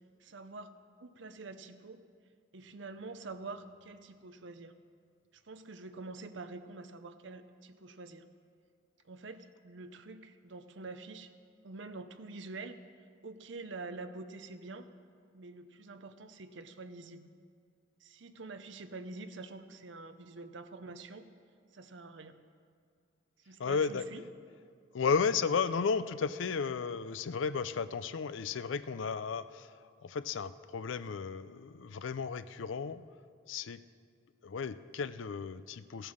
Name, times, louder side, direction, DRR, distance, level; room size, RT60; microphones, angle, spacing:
voice 1, 0.2-0.7 1.0-2.0 2.5-4.7 5.3-8.2 9.0-11.3 11.6-12.8 13.2-14.9 15.3-17.3 18.0-21.3 21.7-22.4 23.4-24.2, right 3 dB, 65° right, 9 dB, 0.7 m, -46 dB
voice 2, 23.6-24.1 24.9-33.0 33.5-33.8 34.4-36.1, left 5 dB, 70° left, 14 dB, 0.4 m, -34 dB
14.5 x 8.9 x 6.4 m, 2.2 s
head